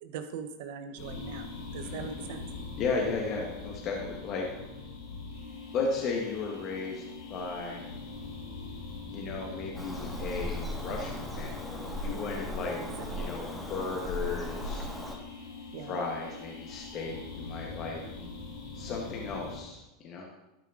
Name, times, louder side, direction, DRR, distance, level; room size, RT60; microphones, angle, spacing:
voice 1, 0.0-2.4 12.8-13.4 15.7-15.9, right 7 dB, 70° right, 7 dB, 1.0 m, -41 dB
sound 1, 1.0-19.6, left 3 dB, 70° left, 3.5 m, -43 dB
voice 2, 1.8-2.4 2.8-4.5 5.7-7.0 7.3-7.9 9.1-12.8 13.1-14.8 15.8-18.0 18.7-20.3, left 4 dB, 45° left, 0 dB, 1.5 m, -35 dB
Bird vocalization bird call bird song, 9.7-15.2, equal, 10° left, 1.7 m, -37 dB
12.0 x 5.2 x 3.8 m, 0.96 s
supercardioid pair, 115°, 0 cm